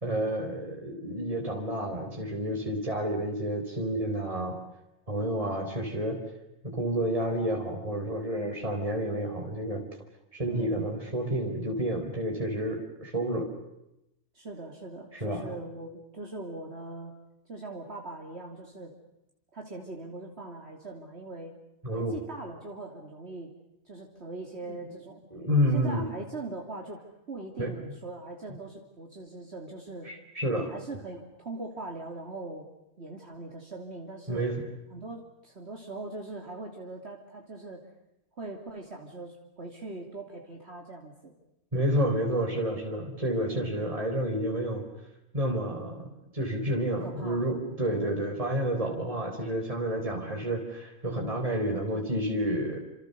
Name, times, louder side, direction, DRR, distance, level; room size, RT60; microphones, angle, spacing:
voice 1, 0.0-4.6 5.1-6.2 6.6-9.9 10.3-13.5 15.1-15.5 21.8-22.1 24.7-24.8 25.3-26.0 27.6-27.9 30.0-30.7 34.3-34.6 41.7-44.8 45.3-52.8, right 1 dB, 25° right, 1 dB, 4.4 m, -30 dB
voice 2, 4.2-4.6 10.5-10.9 14.3-17.1 17.5-18.9 19.5-21.5 21.9-23.5 23.9-25.2 25.7-27.0 27.3-30.1 30.5-32.7 33.0-34.4 34.9-37.9 38.4-41.3 43.4-43.8 47.0-47.5 47.8-48.2 48.7-49.2 50.0-50.4, right 2 dB, 55° right, 1 dB, 3.3 m, -41 dB
29.5 x 27.5 x 6.9 m, 0.88 s
omnidirectional pair, 1.3 m